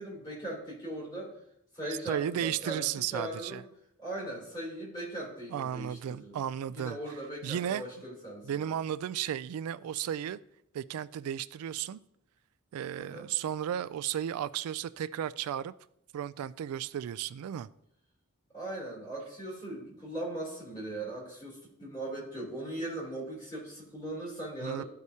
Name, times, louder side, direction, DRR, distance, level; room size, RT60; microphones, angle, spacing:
voice 1, 0.0-1.4 1.7-3.6 4.0-6.4 6.7-8.6 12.9-13.3 18.5-24.9, right 1 dB, 20° left, 3.2 m, -39 dB
voice 2, 2.1-3.6 5.5-7.0 7.4-7.9 8.4-10.4 10.7-12.0 12.7-15.7 16.1-17.7 24.6-24.8, right 10 dB, 85° right, 0.3 m, -34 dB
13.5 x 4.7 x 2.8 m
head